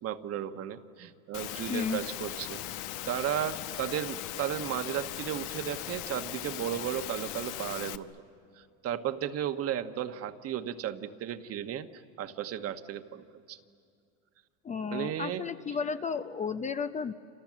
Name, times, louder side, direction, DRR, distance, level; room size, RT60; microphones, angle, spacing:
voice 1, 0.0-8.1 8.6-13.6 14.9-15.4, right 10 dB, 40° right, 9 dB, 1.2 m, -35 dB
Engine / Mechanisms, 1.3-8.0, left 14 dB, 60° left, 1.0 m, -39 dB
voice 2, 1.7-2.0 14.6-17.1, left 5 dB, 20° left, 10 dB, 0.6 m, -33 dB
28.0 x 27.5 x 7.5 m, 2.3 s
supercardioid pair, 110°, 36 cm